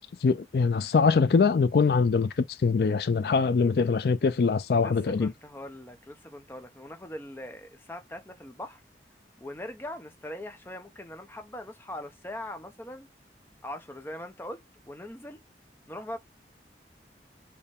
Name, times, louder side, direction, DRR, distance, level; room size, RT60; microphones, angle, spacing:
voice 1, 0.2-2.3 2.6-5.3, left 5 dB, 60° left, 0.4 m, -23 dB
voice 2, 4.8-8.8 9.4-13.1 13.6-14.6 14.9-15.4 15.9-16.2, left 1 dB, 15° left, 0.7 m, -41 dB
6.4 x 2.2 x 3.5 m
head